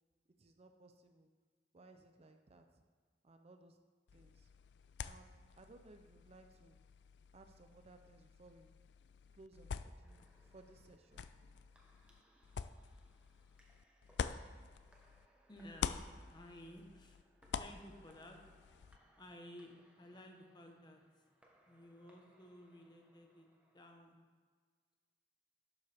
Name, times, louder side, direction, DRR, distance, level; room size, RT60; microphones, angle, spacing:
voice 1, 0.4-1.3 1.7-2.8 3.2-3.8 4.1-4.5 5.1-6.8 7.3-8.7 9.3-11.2, right 2 dB, 35° right, 6 dB, 0.5 m, -61 dB
sound 1, 4.1-15.3 15.6-19.0, left 6 dB, 75° left, 0.4 m, -47 dB
sound 2, 10.0-24.0, right 1 dB, 5° right, 1.1 m, -71 dB
voice 2, 15.5-16.0 16.3-17.2 17.6-18.4 19.2-21.0 21.7-23.5 23.7-24.2, left 1 dB, 25° left, 3 dB, 1.1 m, -55 dB
11.5 x 7.1 x 3.5 m, 1.5 s
head